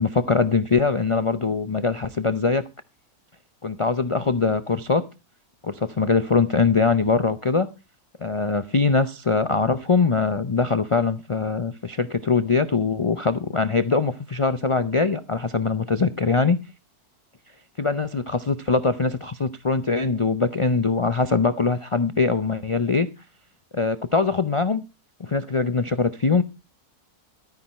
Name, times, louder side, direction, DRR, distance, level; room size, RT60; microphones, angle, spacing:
voice 1, 0.0-2.6 3.6-5.0 5.6-7.7 8.2-16.6 17.8-23.1 23.7-24.8 25.2-26.4, left 4 dB, 55° left, 0.3 m, -22 dB
13.0 x 9.5 x 4.3 m
omnidirectional pair, 1.6 m